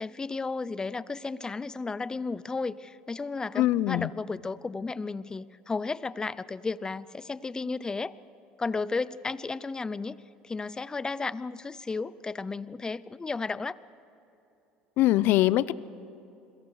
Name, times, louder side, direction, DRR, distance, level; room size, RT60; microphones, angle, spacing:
voice 1, 0.0-8.1 8.6-10.2 10.4-13.8, left 4 dB, 20° left, 18 dB, 0.6 m, -33 dB
voice 2, 3.6-4.1 15.0-15.7, left 15 dB, 65° left, 18 dB, 0.6 m, -22 dB
29.5 x 22.5 x 4.9 m, 2.8 s
supercardioid pair, 90°, 4 cm